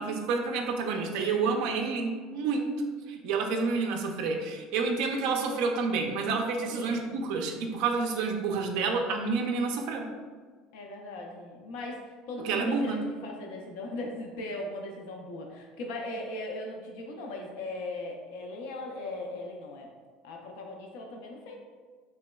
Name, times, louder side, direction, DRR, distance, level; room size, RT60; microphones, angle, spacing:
voice 1, 0.0-2.7 3.1-10.1 12.4-13.0, right 4 dB, 60° right, 2 dB, 0.3 m, -29 dB
voice 2, 6.7-7.1 10.7-19.9 20.2-21.6, left 2 dB, 70° left, 2 dB, 0.4 m, -38 dB
3.2 x 2.9 x 2.2 m, 1.5 s
cardioid pair, 175°, 0 cm